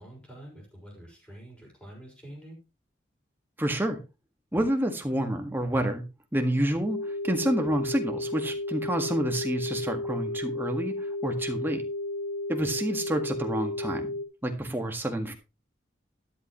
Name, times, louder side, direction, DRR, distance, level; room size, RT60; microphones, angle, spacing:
voice 1, 0.0-2.6 12.6-12.8, right 1 dB, 5° left, -1 dB, 5.7 m, -47 dB
voice 2, 3.6-4.0 4.5-6.0 6.3-11.8 12.5-14.1 14.4-15.3, right 1 dB, 10° right, 4 dB, 1.8 m, -28 dB
sound 1, 6.9-14.3, left 2 dB, 60° left, 3.6 m, -33 dB
12.0 x 10.5 x 3.1 m, 0.28 s
head